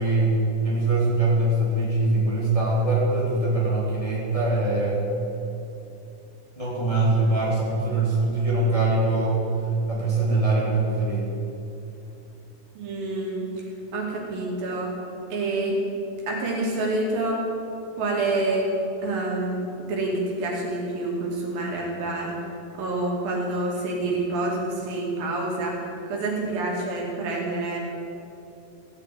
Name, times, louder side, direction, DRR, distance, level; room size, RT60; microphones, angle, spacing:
voice 1, 0.0-5.0 6.6-9.5 9.9-11.2, right 2 dB, 10° left, -7 dB, 3.0 m, -23 dB
voice 2, 12.8-13.7 13.9-14.9 15.3-15.8 16.3-17.4 18.0-18.7 19.0-19.6 19.9-22.5 22.7-27.8, right 2 dB, 80° right, -2 dB, 4.2 m, -27 dB
16.0 x 7.5 x 9.3 m, 2.8 s
omnidirectional pair, 4.0 m